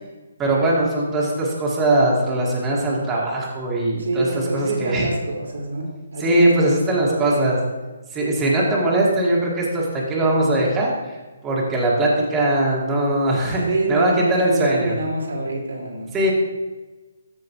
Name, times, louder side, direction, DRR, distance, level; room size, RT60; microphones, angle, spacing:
voice 1, 0.4-4.3 4.5-5.1 6.2-7.6 8.1-11.2 11.4-13.6 13.9-14.9 16.1-16.3, right 1 dB, 15° right, -4 dB, 1.8 m, -20 dB
voice 2, 4.0-6.5 7.0-7.8 13.7-16.3, right 2 dB, 80° right, 0 dB, 2.4 m, -26 dB
14.0 x 5.1 x 3.1 m, 1.2 s
hypercardioid pair, 155°, 0 cm